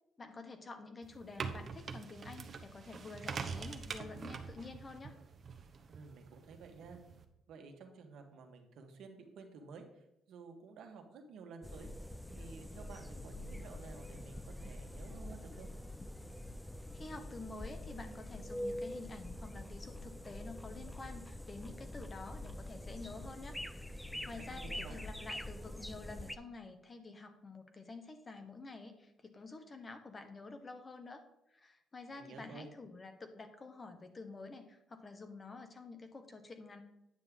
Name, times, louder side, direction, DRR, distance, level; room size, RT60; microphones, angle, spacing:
voice 1, 0.2-5.1 16.9-23.6 23.9-31.2 31.5-36.8, left 3 dB, 30° left, 7 dB, 1.2 m, -49 dB
sound 1, 1.0-7.2, right 5 dB, 50° right, 0.9 m, -45 dB
voice 2, 5.9-7.0 7.5-15.7 24.1-25.0 32.1-32.7, right 4 dB, 80° right, 4 dB, 1.5 m, -53 dB
sound 2, 11.6-26.4, left 1 dB, 5° left, 0.4 m, -45 dB
9.7 x 6.5 x 3.7 m, 0.85 s
cardioid pair, 90°, 0 cm